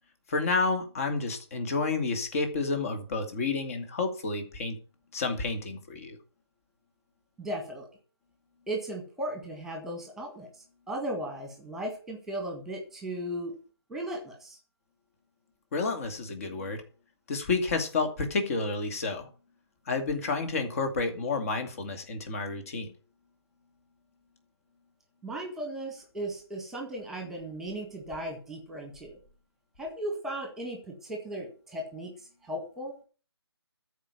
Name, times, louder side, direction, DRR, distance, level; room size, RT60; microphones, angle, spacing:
voice 1, 0.3-4.7 5.1-6.2 15.7-16.8 17.3-19.3 19.9-22.9, left 3 dB, 35° left, 6 dB, 2.5 m, -30 dB
voice 2, 7.4-7.9 8.7-10.5 10.9-13.6 13.9-14.6 25.2-29.2 29.8-32.1 32.4-32.9, right 1 dB, 5° right, 2 dB, 2.0 m, -36 dB
13.5 x 5.2 x 8.4 m, 0.38 s
figure-of-eight pair, 155°, 14 cm